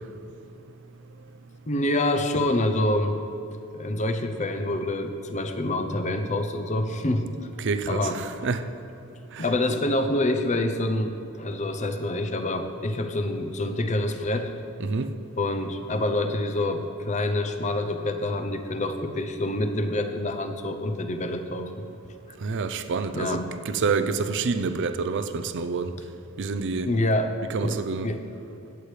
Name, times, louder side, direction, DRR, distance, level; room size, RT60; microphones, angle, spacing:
voice 1, 1.7-3.2 3.7-7.5 7.9-8.2 9.4-14.5 15.4-21.8 23.1-23.5 26.8-27.3 27.6-28.2, left 1 dB, 35° left, 0.6 m, -26 dB
voice 2, 7.6-8.7 9.3-9.4 14.8-15.1 22.4-25.9 26.4-26.9 27.5-28.2, right 4 dB, 55° right, 0.5 m, -28 dB
16.5 x 8.3 x 3.2 m
head